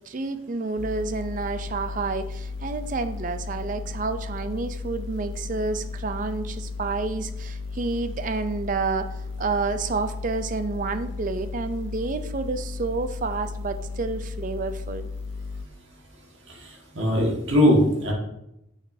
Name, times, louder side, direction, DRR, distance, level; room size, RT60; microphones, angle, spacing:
voice 1, 0.1-9.1 9.4-15.1, right 3 dB, 40° right, 10 dB, 0.4 m, -29 dB
sound 1, 0.8-15.7, left 4 dB, 80° left, 0.4 m, -34 dB
voice 2, 16.5-18.1, equal, 65° right, -1 dB, 1.6 m, -21 dB
6.4 x 6.2 x 2.7 m, 0.85 s
head